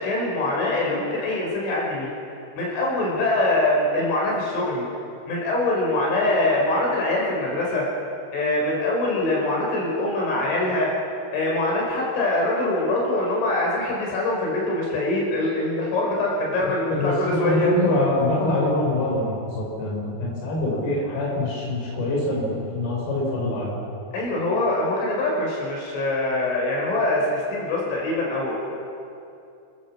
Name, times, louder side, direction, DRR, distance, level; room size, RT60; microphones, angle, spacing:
voice 1, 0.0-2.1 2.6-4.9 5.3-7.9 8.3-10.9 11.3-17.7 24.1-28.6, left 2 dB, 85° left, -3 dB, 7.5 m, -23 dB
voice 2, 16.9-23.7, left 2 dB, 55° left, -3 dB, 6.1 m, -24 dB
27.5 x 14.5 x 7.3 m, 2.6 s
omnidirectional pair, 5.4 m